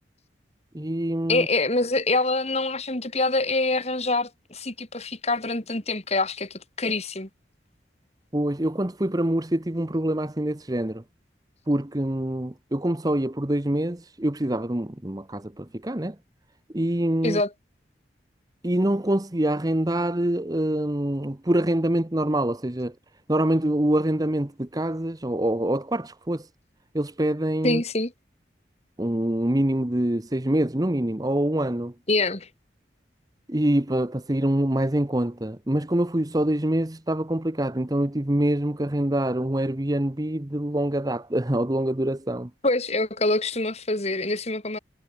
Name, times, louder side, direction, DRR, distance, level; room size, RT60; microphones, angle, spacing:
voice 1, 0.7-1.5 8.3-11.0 11.7-16.2 16.7-17.4 18.6-22.9 23.3-26.5 26.9-27.8 29.0-31.9 33.5-42.5, right 1 dB, 20° right, 1.0 m, -25 dB
voice 2, 1.3-7.3 17.2-17.5 27.6-28.1 32.1-32.5 42.6-44.8, left 2 dB, 35° left, 3.1 m, -25 dB
head